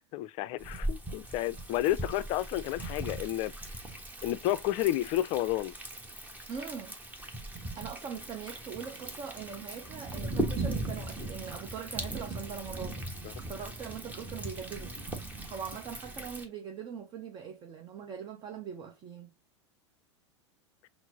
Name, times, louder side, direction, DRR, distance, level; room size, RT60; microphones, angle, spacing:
voice 1, 0.1-3.5 4.2-5.7, left 14 dB, 40° left, 0.4 m, -31 dB
Thunder, 0.6-16.5, right 1 dB, 10° right, 1.1 m, -39 dB
voice 2, 6.5-7.0 7.8-13.0 13.5-15.0 15.5-19.3, right 7 dB, 30° right, 0.7 m, -41 dB
5.9 x 2.0 x 3.9 m
figure-of-eight pair, 85°, 15 cm